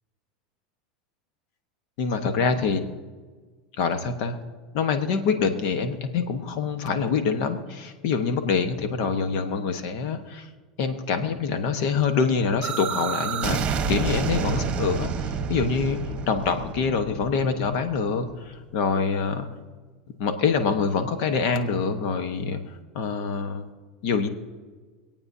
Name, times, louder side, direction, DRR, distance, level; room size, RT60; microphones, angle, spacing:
voice 1, 2.0-2.8 3.8-4.4 4.7-10.5 10.8-13.6 13.9-19.5 20.2-23.6 24.0-24.3, left 5 dB, 60° left, 8 dB, 1.2 m, -25 dB
sound 1, 12.6-18.3, right 6 dB, 30° right, 1.2 m, -29 dB
26.0 x 8.8 x 2.8 m, 1.4 s
supercardioid pair, 115°, 4 cm